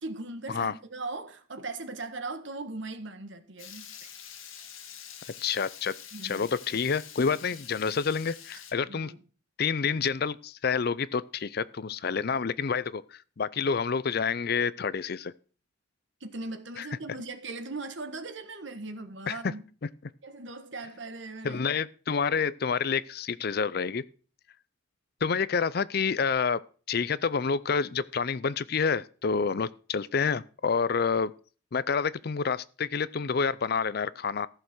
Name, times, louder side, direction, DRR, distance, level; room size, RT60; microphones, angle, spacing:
voice 1, 0.0-4.1 6.1-6.5 8.9-9.2 16.2-19.6 20.2-21.6 29.3-29.4, right 3 dB, 60° right, 1.6 m, -39 dB
Water tap faucet / Liquid, 3.6-8.7, left 8 dB, 85° left, 1.8 m, -46 dB
voice 2, 5.4-5.9 6.2-9.1 9.6-15.3 16.8-16.9 19.3-19.5 21.4-24.0 25.2-26.6 26.9-31.3 31.7-34.5, left 5 dB, 50° left, 0.5 m, -28 dB
14.5 x 6.8 x 6.1 m
head